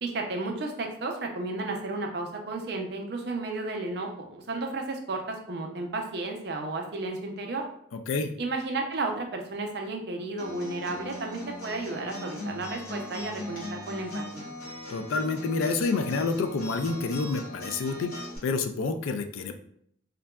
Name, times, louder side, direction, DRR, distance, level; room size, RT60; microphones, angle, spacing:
voice 1, 0.0-7.6 8.4-14.4, right 2 dB, 55° right, 2 dB, 0.5 m, -33 dB
voice 2, 7.9-8.3 14.9-19.6, left 4 dB, 90° left, 8 dB, 0.3 m, -28 dB
Acoustic guitar, 10.4-18.4, left 1 dB, 50° left, 1.5 m, -39 dB
3.7 x 2.2 x 2.2 m, 0.68 s
head